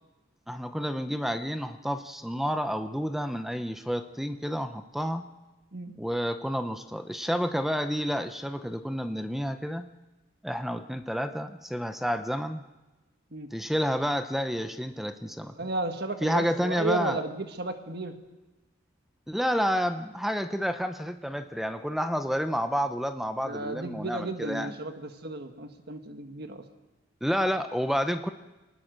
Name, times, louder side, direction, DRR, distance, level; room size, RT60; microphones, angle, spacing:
voice 1, 0.5-5.2 6.0-9.9 10.4-12.6 13.5-15.5 16.2-17.2 19.3-24.7 27.2-28.3, equal, ahead, 9 dB, 0.8 m, -30 dB
voice 2, 15.6-18.1 23.4-26.6, right 2 dB, 50° right, 6 dB, 1.6 m, -33 dB
25.0 x 19.5 x 6.6 m, 1.1 s
head